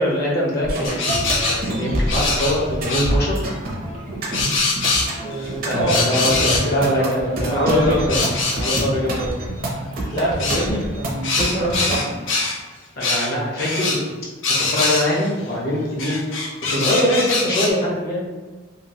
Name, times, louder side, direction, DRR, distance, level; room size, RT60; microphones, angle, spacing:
voice 1, 0.0-3.4 5.7-8.2 8.5-9.3 13.0-14.0 14.6-16.1 16.7-18.2, equal, 55° left, -4 dB, 0.9 m, -22 dB
sound 1, 0.6-12.0, right 1 dB, 50° right, 0.7 m, -26 dB
sound 2, 0.8-2.6 2.9-3.1 4.3-5.4 5.9-6.7 7.6-8.9 10.4-10.6 11.2-12.6 13.0-13.3 13.6-14.0 14.4-15.3 16.0-17.7, left 3 dB, 85° left, 0.6 m, -23 dB
voice 2, 5.2-8.0 10.1-12.2, right 1 dB, 25° left, -8 dB, 0.6 m, -25 dB
3.0 x 2.6 x 2.8 m, 1.3 s
head